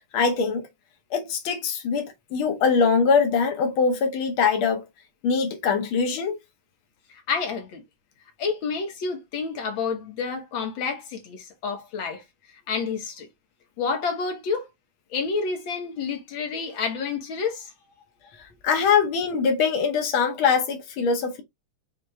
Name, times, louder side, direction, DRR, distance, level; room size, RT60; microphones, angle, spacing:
voice 1, 0.1-0.7 1.1-4.8 5.2-6.4 18.4-21.4, left 5 dB, 80° left, 1.1 m, -23 dB
voice 2, 7.3-7.8 8.4-12.2 12.7-13.3 13.8-14.6 15.1-17.7, left 5 dB, 50° left, 1.6 m, -29 dB
6.5 x 2.5 x 3.2 m
omnidirectional pair, 3.7 m